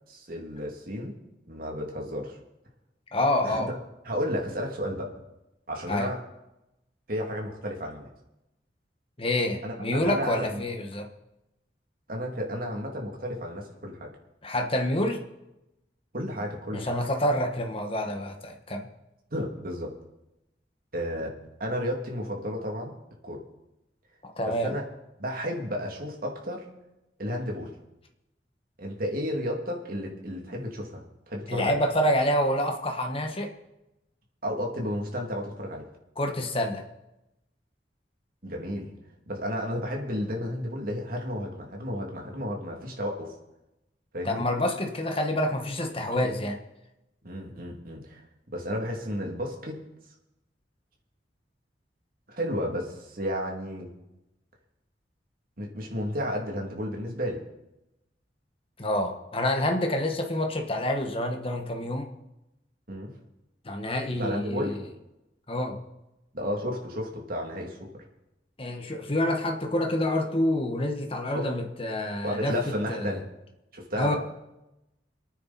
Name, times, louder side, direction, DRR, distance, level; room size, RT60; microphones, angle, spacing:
voice 1, 0.1-1.1 1.5-2.4 3.4-3.7 4.0-5.1 5.7-6.2 7.1-8.1 9.6-9.7 10.0-10.6 12.1-14.1 16.1-16.9 19.3-19.9 20.9-23.0 23.2-23.4 24.4-24.8 25.2-26.7 27.2-27.8 28.8-31.0 31.3-31.8 34.4-35.9 38.4-38.9 39.3-43.3 44.1-44.4 46.1-46.3 47.2-48.2 48.5-49.8 52.3-53.9 55.6-57.4 62.9-63.1 64.2-64.9 66.3-68.0 71.3-71.5 72.2-73.2 73.7-74.2, equal, 55° right, 0 dB, 2.9 m, -32 dB
voice 2, 3.1-3.7 5.9-6.1 9.2-11.1 14.4-15.2 16.7-18.9 24.2-24.7 31.5-33.5 36.2-36.8 44.2-46.6 58.8-62.1 63.6-64.8 65.5-65.8 68.6-72.6 72.9-73.2 74.0-74.2, left 1 dB, 30° left, 3 dB, 1.7 m, -27 dB
26.5 x 9.4 x 4.4 m, 0.94 s
head